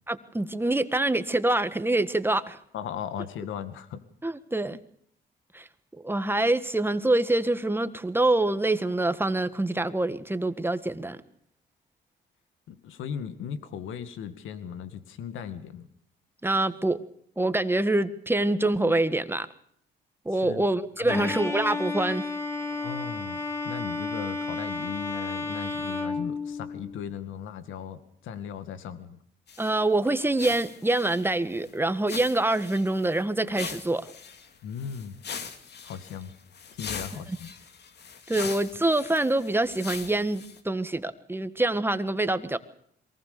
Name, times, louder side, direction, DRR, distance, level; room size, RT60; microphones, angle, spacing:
voice 1, 0.1-2.6 4.2-4.8 5.5-5.7 6.0-11.2 16.4-17.0 17.4-19.5 20.3-22.2 29.6-34.1 38.3-42.6, right 2 dB, 10° right, 1.6 m, -25 dB
voice 2, 2.7-4.0 12.7-15.9 20.3-20.7 21.0-21.3 22.7-29.2 34.6-35.2 35.8-36.3 36.7-37.5 41.4-41.5, left 8 dB, 85° left, 2.1 m, -37 dB
Bowed string instrument, 21.1-27.0, left 3 dB, 15° left, 4.3 m, -32 dB
sound 1, 29.5-29.8 30.1-30.2 30.4-31.7 32.1-33.2 33.5-40.6, left 6 dB, 55° left, 2.5 m, -41 dB
23.0 x 19.0 x 6.9 m
cardioid pair, 90°, 20 cm